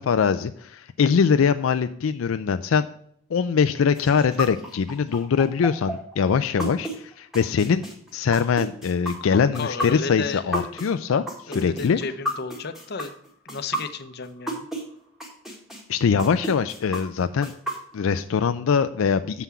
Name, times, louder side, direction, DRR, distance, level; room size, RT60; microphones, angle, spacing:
voice 1, 0.0-2.9 3.3-7.8 8.1-12.0 15.9-17.5 17.9-19.4, left 6 dB, 80° left, 10 dB, 0.4 m, -22 dB
sound 1, 4.0-14.8 15.2-18.2, equal, ahead, 1.6 m, -31 dB
voice 2, 9.2-10.7 11.5-13.1 13.4-14.7, left 4 dB, 50° left, 10 dB, 0.7 m, -33 dB
7.0 x 5.7 x 6.0 m, 0.64 s
head